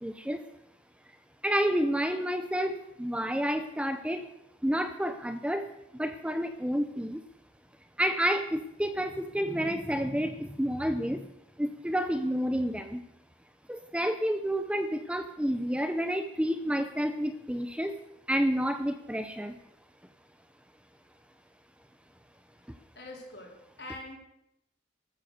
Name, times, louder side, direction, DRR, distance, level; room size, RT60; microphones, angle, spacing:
voice 1, 0.0-0.4 1.4-4.3 4.6-7.2 8.0-11.3 11.6-13.0 13.7-17.9 18.3-19.5, equal, 5° right, 9 dB, 0.7 m, -30 dB
voice 2, 22.5-24.2, left 2 dB, 60° left, 0 dB, 4.5 m, -45 dB
14.5 x 13.0 x 6.6 m, 0.81 s
head